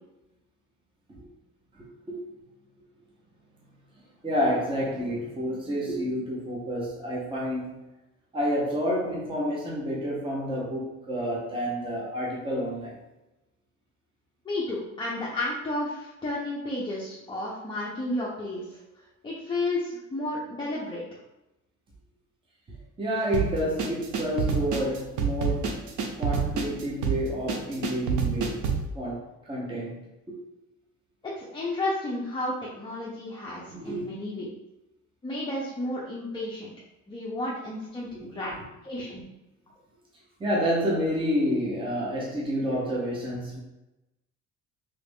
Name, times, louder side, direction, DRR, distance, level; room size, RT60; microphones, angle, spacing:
voice 1, 1.7-2.2 4.2-7.7 8.3-13.0 23.0-25.8 26.1-28.7 28.9-30.4 33.7-34.1 38.3-38.4 40.4-43.6, equal, 15° right, -4 dB, 0.8 m, -29 dB
voice 2, 14.4-18.8 19.2-21.0 31.2-34.5 35.2-36.7 37.1-38.5 38.8-39.2, left 2 dB, 15° left, -6 dB, 0.5 m, -32 dB
sound 1, 23.3-28.9, right 5 dB, 75° right, 0.6 m, -28 dB
3.2 x 2.4 x 3.4 m, 0.95 s
cardioid pair, 140°, 31 cm